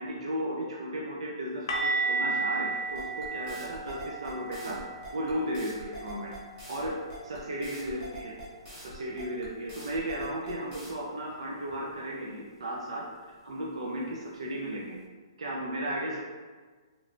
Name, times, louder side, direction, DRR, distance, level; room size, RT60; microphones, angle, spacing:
voice 1, 0.0-4.8 5.1-6.3 6.7-7.0 7.2-8.4 8.8-15.0 15.4-16.2, right 1 dB, 80° right, -2 dB, 0.5 m, -35 dB
sound 1, 1.7-7.5 7.7-8.0 8.3-8.5 11.7-11.8, right 3 dB, 60° left, 0.6 m, -34 dB
sound 2, 2.9-10.9, right 2 dB, 20° right, 0.7 m, -45 dB
3.1 x 3.0 x 2.5 m, 1.4 s
hypercardioid pair, 180°, 3 cm